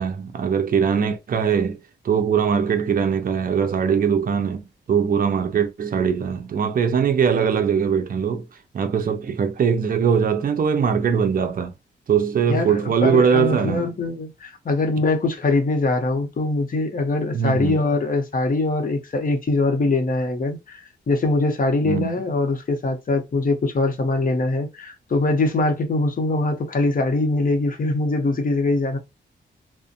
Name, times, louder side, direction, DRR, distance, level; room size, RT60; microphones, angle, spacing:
voice 1, 0.0-1.8 2.0-8.5 8.7-11.7 12.1-13.9 17.3-17.8 21.8-22.1, right 7 dB, 50° right, 0.5 m, -21 dB
voice 2, 12.4-29.0, left 2 dB, 45° left, 0.7 m, -22 dB
2.5 x 2.1 x 2.6 m
cardioid pair, 90°, 20 cm